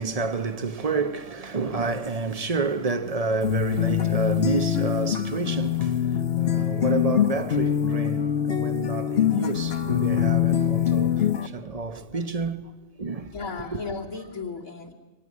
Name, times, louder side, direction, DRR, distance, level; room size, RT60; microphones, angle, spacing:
voice 1, 0.0-13.3 13.7-13.8, right 4 dB, 30° right, 0.9 m, -29 dB
sound 1, 3.4-11.5, left 10 dB, 50° left, 1.1 m, -24 dB
voice 2, 13.3-14.9, left 4 dB, 85° left, 2.6 m, -35 dB
23.5 x 19.0 x 9.6 m
omnidirectional pair, 1.4 m